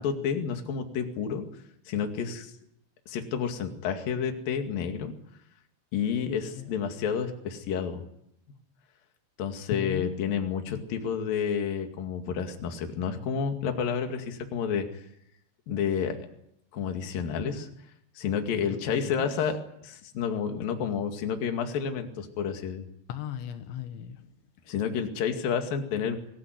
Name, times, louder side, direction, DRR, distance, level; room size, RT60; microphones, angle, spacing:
voice 1, 0.0-1.5 1.9-2.5 3.1-5.1 5.9-8.0 9.4-15.0 15.7-16.2 16.7-17.7 18.2-22.9 24.7-26.2, left 7 dB, 55° left, 5 dB, 3.7 m, -30 dB
voice 2, 9.7-10.8 18.7-19.5 23.1-24.4, left 10 dB, 85° left, 8 dB, 3.7 m, -38 dB
24.0 x 15.5 x 9.4 m, 0.76 s
omnidirectional pair, 5.2 m